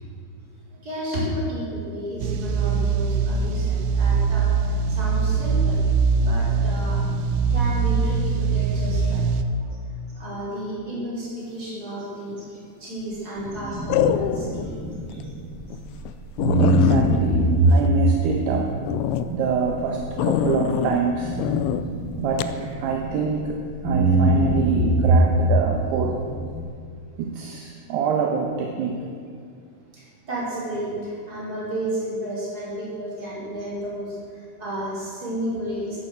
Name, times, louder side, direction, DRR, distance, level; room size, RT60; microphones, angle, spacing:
voice 1, 0.8-4.5 4.9-5.8 6.1-7.0 7.5-9.3 10.1-14.8 15.1-15.2 29.9-36.0, right 1 dB, 20° right, -7 dB, 5.2 m, -32 dB
sound 1, 2.2-9.4, right 5 dB, 90° right, 2.2 m, -22 dB
sound 2, 12.3-12.7 13.9-14.7 15.1-15.2 15.7-15.8 16.1-16.2 16.4-18.4 18.8-19.3 20.2-21.0 21.4-21.8 22.4-22.6, left 10 dB, 80° left, 2.6 m, -24 dB
sound 3, 13.4-16.0 16.4-23.4 23.8-26.6, right 1 dB, 25° left, 2.3 m, -23 dB
voice 2, 16.6-18.7 19.3-21.4 22.2-26.3 27.2-29.0, right 5 dB, 75° right, 2 dB, 2.8 m, -26 dB
14.0 x 10.5 x 7.9 m, 2.2 s
omnidirectional pair, 5.5 m